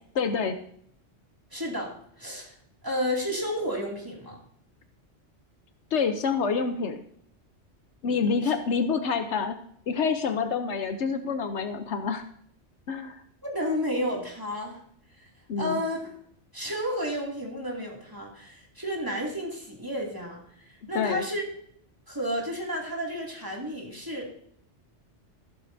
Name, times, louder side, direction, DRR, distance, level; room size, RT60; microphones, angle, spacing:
voice 1, 0.1-0.6 5.9-7.0 8.0-9.6 9.9-12.2 12.9-13.2 15.5-15.8 20.9-21.2, left 5 dB, 70° left, 8 dB, 1.1 m, -27 dB
voice 2, 1.5-2.5 2.8-4.4 8.4-8.5 13.4-14.8 15.2-15.3 15.6-16.0 16.5-21.4 22.1-24.3, equal, 15° right, -2 dB, 2.4 m, -31 dB
14.0 x 12.0 x 2.6 m, 0.66 s
omnidirectional pair, 1.2 m